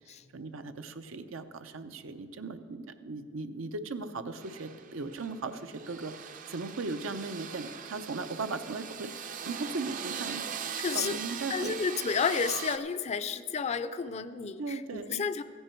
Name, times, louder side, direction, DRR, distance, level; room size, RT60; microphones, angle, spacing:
voice 1, 0.3-10.5 10.9-11.8 14.6-15.2, right 3 dB, 85° right, 9 dB, 0.7 m, -38 dB
sound 1, 4.4-12.8, right 7 dB, 40° right, 0.5 m, -40 dB
voice 2, 10.8-11.2 11.5-15.4, left 5 dB, 35° left, 13 dB, 0.4 m, -31 dB
14.5 x 10.0 x 4.5 m, 2.1 s
head